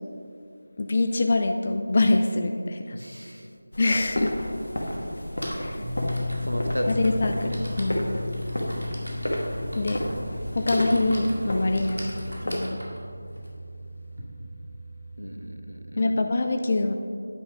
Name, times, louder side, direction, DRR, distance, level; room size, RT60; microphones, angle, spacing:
voice 1, 0.8-3.0 3.8-4.3 5.5-5.8 6.9-8.1 9.8-10.0 10.5-12.0 12.4-12.8 16.0-16.9, left 2 dB, 35° left, 5 dB, 0.4 m, -24 dB
voice 2, 2.9-3.5 5.7-5.9 6.4-6.9 11.7-11.9 15.2-16.0, equal, 85° left, 5 dB, 1.0 m, -34 dB
sound 1, 3.7-12.5, equal, 60° left, 1.5 m, -32 dB
Typing, 4.0-4.1 5.1-14.2, equal, 75° right, 2.2 m, -41 dB
sound 2, 5.8-15.9, left 1 dB, 25° right, 1.2 m, -36 dB
10.0 x 6.1 x 5.0 m, 2.4 s
figure-of-eight pair, 165°, 0 cm